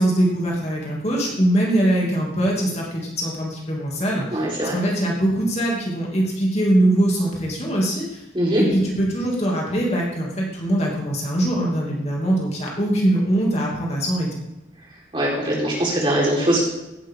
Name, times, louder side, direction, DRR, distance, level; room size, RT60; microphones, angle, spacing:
voice 1, 0.0-8.2 8.6-14.4, right 1 dB, 35° left, -2 dB, 2.7 m, -22 dB
voice 2, 4.3-4.7 8.3-8.6 15.1-16.6, right 1 dB, 30° right, -5 dB, 4.3 m, -21 dB
16.0 x 11.0 x 3.8 m, 0.94 s
head